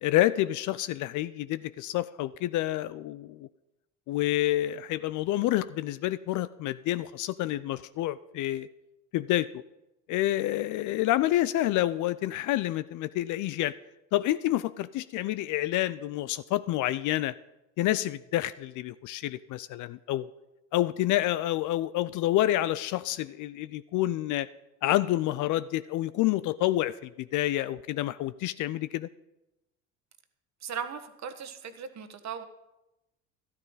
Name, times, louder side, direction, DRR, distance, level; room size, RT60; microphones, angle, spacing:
voice 1, 0.0-3.5 4.1-8.7 9.1-9.5 10.1-13.8 14.1-17.3 17.8-20.3 20.7-24.5 24.8-29.1, left 14 dB, 45° left, 15 dB, 0.5 m, -28 dB
voice 2, 30.6-32.4, right 7 dB, 40° right, 8 dB, 1.5 m, -38 dB
13.0 x 13.0 x 4.0 m, 0.95 s
hypercardioid pair, 70°, 42 cm